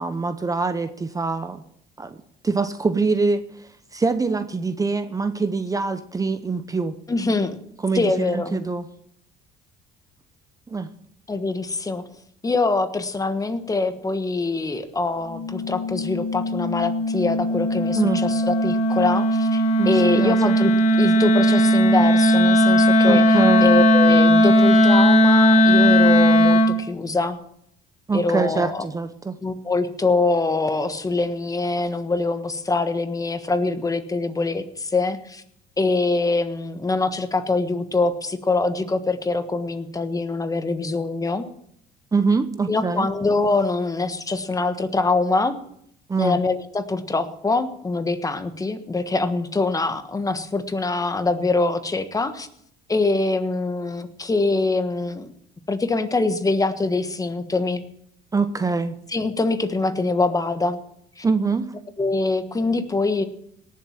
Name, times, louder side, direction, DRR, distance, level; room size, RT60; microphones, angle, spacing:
voice 1, 0.0-1.6 2.0-2.2 2.4-7.0 7.8-8.9 10.7-10.9 18.0-18.2 19.8-20.6 23.1-23.7 28.1-29.4 42.1-43.1 46.1-46.4 58.3-59.0 61.2-61.7, right 4 dB, 20° right, 11 dB, 0.9 m, -24 dB
voice 2, 7.1-7.6 7.9-8.6 11.3-12.0 12.4-20.7 21.0-27.4 28.1-28.9 29.4-35.4 35.8-41.5 42.7-45.6 46.2-52.5 52.9-55.3 55.7-57.8 59.1-60.8 61.2-61.3 62.0-63.2, left 3 dB, 20° left, 10 dB, 1.4 m, -24 dB
Wind instrument woodwind instrument, 15.3-26.8, equal, 40° left, 1.8 m, -17 dB
18.0 x 7.5 x 7.3 m, 0.71 s
cardioid pair, 100°, 17 cm